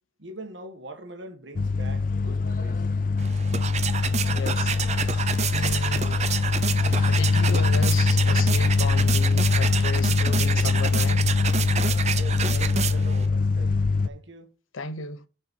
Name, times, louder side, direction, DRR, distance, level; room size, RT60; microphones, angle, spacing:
voice 1, 0.2-2.9 12.1-14.5, right 2 dB, 65° right, 1.8 m, -43 dB
sound 1, 1.6-14.1, left 4 dB, 45° left, 0.5 m, -23 dB
sound 2, 3.2-13.3, right 7 dB, 35° right, 0.6 m, -29 dB
voice 2, 4.3-4.8 5.5-6.3 6.9-11.3 14.7-15.3, left 3 dB, 90° left, 0.9 m, -34 dB
Wind instrument woodwind instrument, 5.2-9.3, left 6 dB, 70° left, 2.8 m, -50 dB
6.8 x 5.5 x 5.4 m
head